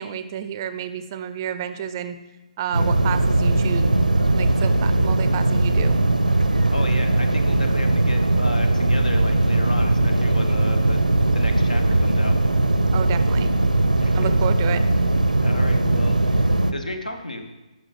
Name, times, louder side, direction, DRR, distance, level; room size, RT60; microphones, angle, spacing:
voice 1, 0.0-2.2 2.6-4.1 4.3-6.0 12.9-13.5 14.1-14.8, right 9 dB, 30° right, 11 dB, 0.4 m, -30 dB
sound 1, 2.7-16.7, right 2 dB, 90° right, 0.5 m, -19 dB
voice 2, 6.7-11.0 11.3-12.4 14.0-14.3 15.4-17.4, left 1 dB, 80° left, 5 dB, 1.0 m, -33 dB
9.9 x 6.2 x 3.2 m, 1.1 s
figure-of-eight pair, 140°, 4 cm